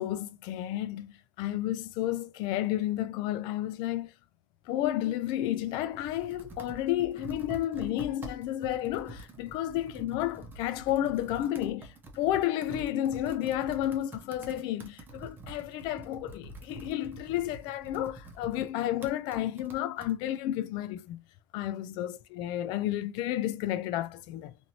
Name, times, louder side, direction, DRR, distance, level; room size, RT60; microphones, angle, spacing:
voice 1, 0.0-4.1 4.7-21.2 21.5-24.6, left 13 dB, 90° left, 0.4 m, -31 dB
Computer keyboard, 5.5-20.1, right 2 dB, 25° right, 0.8 m, -47 dB
3.0 x 2.6 x 2.7 m
cardioid pair, 140°, 7 cm